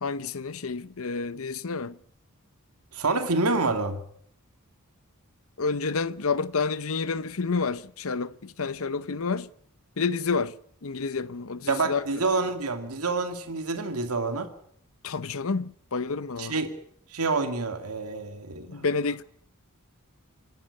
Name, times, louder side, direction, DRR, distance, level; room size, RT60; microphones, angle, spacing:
voice 1, 0.0-2.0 5.6-9.5 10.0-10.5 10.8-12.2 15.0-16.6 18.7-19.2, left 4 dB, 65° left, 0.8 m, -29 dB
voice 2, 2.9-4.0 11.7-14.5 16.4-16.7 17.1-18.9, right 3 dB, 85° right, 2.3 m, -27 dB
26.5 x 12.0 x 9.7 m
head